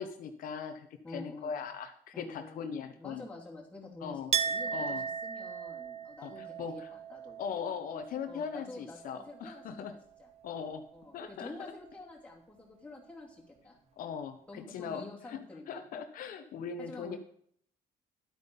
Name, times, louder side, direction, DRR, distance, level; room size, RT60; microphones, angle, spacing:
voice 1, 0.0-3.2 4.0-4.3 4.7-5.0 6.2-6.9 7.4-9.9 10.4-10.9 11.1-11.7 14.0-15.4 15.7-17.2, left 7 dB, 65° left, 7 dB, 1.0 m, -40 dB
voice 2, 1.0-1.6 2.1-7.4 8.3-9.7 10.2-10.3 10.9-13.8 14.5-15.8 16.8-17.2, left 2 dB, 10° left, -3 dB, 2.7 m, -48 dB
Chink clink, 4.3-9.8 10.1-11.0, right 6 dB, 45° right, 0.8 m, -37 dB
12.0 x 8.3 x 5.3 m, 0.63 s
cardioid pair, 155°, 15 cm